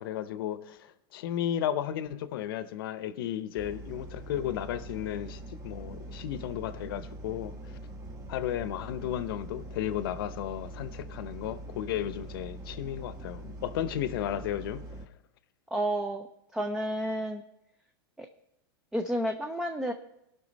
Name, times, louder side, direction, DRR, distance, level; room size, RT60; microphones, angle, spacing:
voice 1, 0.0-7.5 8.3-14.8, left 11 dB, 70° left, 0.8 m, -34 dB
sound 1, 3.6-15.1, right 1 dB, 25° right, 1.2 m, -43 dB
voice 2, 15.7-16.3 16.5-17.4 18.2-18.3 18.9-19.9, right 1 dB, 5° right, 0.5 m, -30 dB
17.5 x 5.9 x 4.1 m
supercardioid pair, 140°, 12 cm